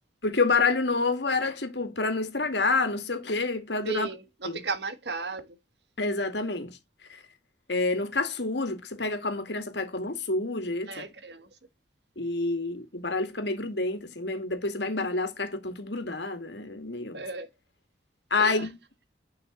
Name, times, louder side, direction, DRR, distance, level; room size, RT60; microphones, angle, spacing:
voice 1, 0.2-4.1 4.4-4.6 6.0-6.8 7.1-7.2 7.7-11.1 12.2-17.2 18.3-18.8, left 3 dB, 75° left, 2.2 m, -28 dB
voice 2, 3.8-5.6 10.9-11.5 17.1-17.5 18.4-18.7, right 4 dB, 70° right, 1.4 m, -35 dB
9.8 x 5.9 x 3.9 m
head